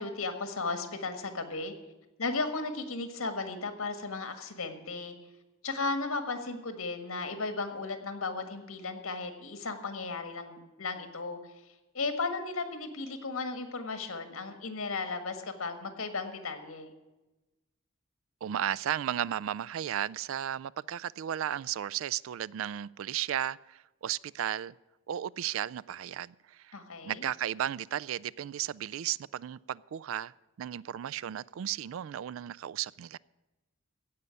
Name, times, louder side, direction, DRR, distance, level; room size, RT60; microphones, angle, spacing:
voice 1, 0.0-1.7 2.2-5.1 5.6-11.4 11.9-16.9 26.7-27.3, left 3 dB, 90° left, 1.7 m, -35 dB
voice 2, 18.4-24.7 25.1-26.8 27.0-30.3 30.6-33.2, right 10 dB, 70° right, 0.3 m, -34 dB
16.0 x 5.5 x 9.6 m
head